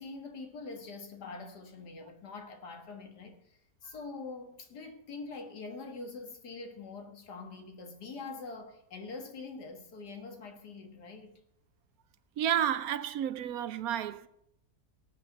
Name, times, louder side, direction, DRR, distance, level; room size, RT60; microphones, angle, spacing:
voice 1, 0.0-11.3, left 3 dB, 80° left, 2.2 m, -44 dB
voice 2, 12.4-14.3, right 10 dB, 70° right, 1.0 m, -31 dB
19.0 x 7.9 x 4.0 m
omnidirectional pair, 1.7 m